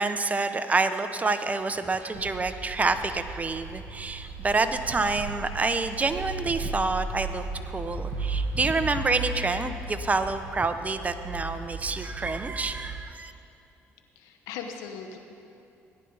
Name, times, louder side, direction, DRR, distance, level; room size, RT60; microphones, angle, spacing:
voice 1, 0.0-13.3, right 3 dB, 25° right, 9 dB, 0.8 m, -28 dB
sound 1, 2.1-13.0, right 3 dB, 85° right, 1.1 m, -36 dB
voice 2, 14.1-15.2, left 6 dB, 85° left, 5 dB, 1.1 m, -38 dB
18.0 x 10.0 x 4.0 m, 2.7 s
supercardioid pair, 75°, 6 cm